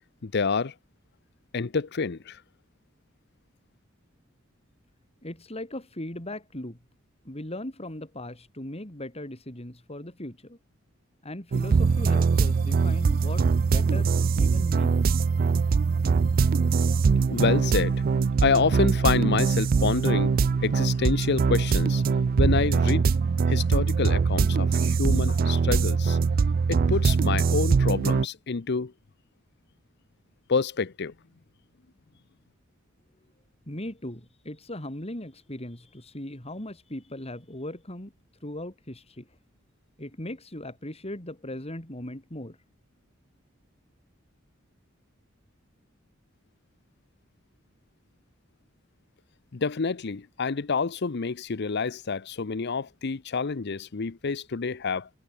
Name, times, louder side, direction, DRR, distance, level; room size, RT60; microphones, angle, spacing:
voice 1, 0.2-0.7 1.5-2.4 17.3-18.0 18.4-20.4 20.6-22.0 22.4-23.0 23.5-26.2 26.7-28.9 30.5-31.1 49.5-55.1, left 4 dB, 55° left, 0.7 m, -27 dB
voice 2, 5.2-6.8 7.2-10.6 11.2-15.2 33.7-38.1 38.4-39.3 40.0-42.6, left 1 dB, 30° left, 4.2 m, -38 dB
sound 1, 11.5-28.3, right 5 dB, 45° right, 0.4 m, -22 dB
head